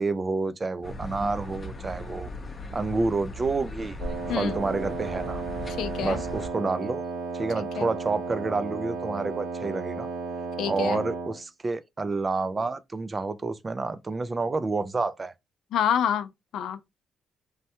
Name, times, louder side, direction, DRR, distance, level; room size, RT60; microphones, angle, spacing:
voice 1, 0.0-2.3 2.7-4.0 4.4-5.4 6.0-7.0 7.3-10.1 10.7-15.3, right 3 dB, 30° right, 0.3 m, -29 dB
sound 1, 0.8-6.5, left 1 dB, 35° left, 0.6 m, -38 dB
Wind instrument woodwind instrument, 4.0-11.4, right 4 dB, 80° right, 0.7 m, -34 dB
voice 2, 5.8-6.2 7.8-7.9 10.6-11.0 15.7-16.8, left 9 dB, 80° left, 0.4 m, -27 dB
3.2 x 2.2 x 2.8 m
cardioid pair, 105°, 0 cm